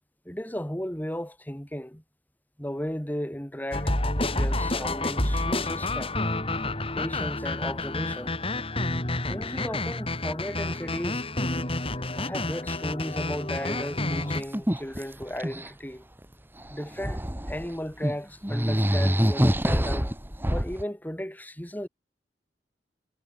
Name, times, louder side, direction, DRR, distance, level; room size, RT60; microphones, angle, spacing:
voice 1, 0.3-2.0 2.6-6.1 7.0-8.3 9.3-11.3 12.2-16.0 16.7-20.2 20.5-21.9, equal, 10° left, 3.6 m, -35 dB
sound 1, 3.7-14.4, left 2 dB, 30° left, 5.5 m, -29 dB
sound 2, 13.7-13.8 14.1-15.7 16.6-17.7 18.0-18.1 18.4-20.8, equal, 10° right, 2.2 m, -26 dB
head